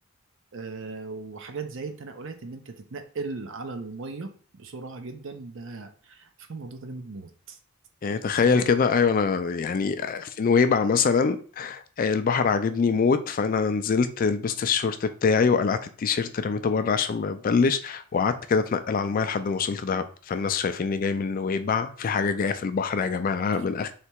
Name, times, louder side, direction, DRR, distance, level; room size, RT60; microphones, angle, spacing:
voice 1, 0.5-7.6 8.3-8.6 23.5-23.7, right 3 dB, 55° right, 0.6 m, -38 dB
voice 2, 8.0-23.9, left 5 dB, 40° left, 0.3 m, -24 dB
3.3 x 2.9 x 4.4 m
head